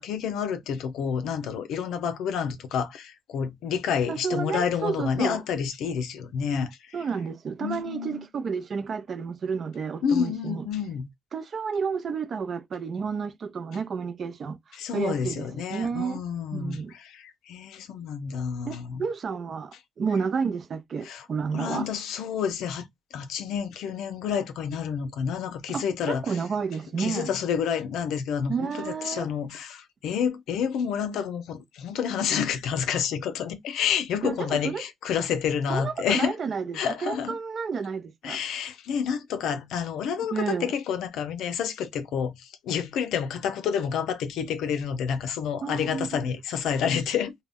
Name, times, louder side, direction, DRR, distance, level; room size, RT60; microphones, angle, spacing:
voice 1, 0.0-6.7 7.6-8.3 10.0-11.1 14.7-19.0 21.0-21.2 21.5-26.4 27.0-36.3 36.7-37.4 38.2-47.3, left 7 dB, 85° left, 0.5 m, -29 dB
voice 2, 4.1-5.4 6.9-10.6 11.3-14.6 14.9-16.2 16.5-16.9 18.7-21.9 25.7-27.3 28.5-29.3 34.2-34.8 35.7-38.4 40.3-40.7 45.6-46.1, right 5 dB, 50° right, 0.6 m, -31 dB
2.1 x 2.1 x 3.5 m
cardioid pair, 90°, 0 cm